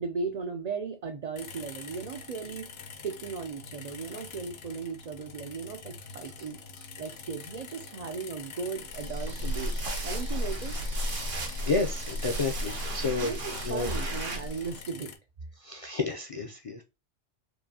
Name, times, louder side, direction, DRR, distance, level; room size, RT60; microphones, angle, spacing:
voice 1, 0.0-2.7 3.0-6.6 7.0-9.8 10.0-10.7 13.2-15.1, right 5 dB, 70° right, 0.3 m, -36 dB
sound 1, 1.3-15.2, left 5 dB, 65° left, 0.8 m, -45 dB
sound 2, 8.9-14.8, equal, 90° right, 1.5 m, -33 dB
voice 2, 11.7-13.4 13.6-13.9 15.6-16.8, left 3 dB, 50° left, 0.4 m, -30 dB
4.5 x 2.6 x 2.7 m
omnidirectional pair, 1.2 m